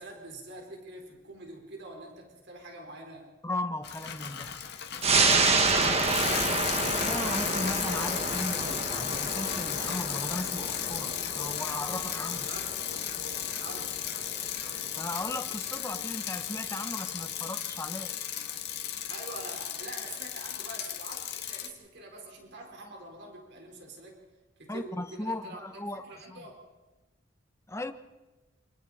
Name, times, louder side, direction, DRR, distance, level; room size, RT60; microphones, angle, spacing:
voice 1, 0.0-3.3 5.7-6.8 12.5-12.7 13.6-14.0 19.1-24.2 24.6-25.6 26.1-26.6, right 2 dB, 60° right, 4.5 m, -45 dB
voice 2, 3.4-4.5 7.0-12.5 14.9-18.1 24.7-26.4 27.7-27.9, left 2 dB, 15° left, 1.1 m, -37 dB
Bicycle, 3.8-21.7, left 9 dB, 60° left, 1.9 m, -35 dB
sound 1, 5.0-16.0 16.4-16.5, right 3 dB, 35° right, 1.9 m, -30 dB
28.0 x 26.0 x 4.3 m
head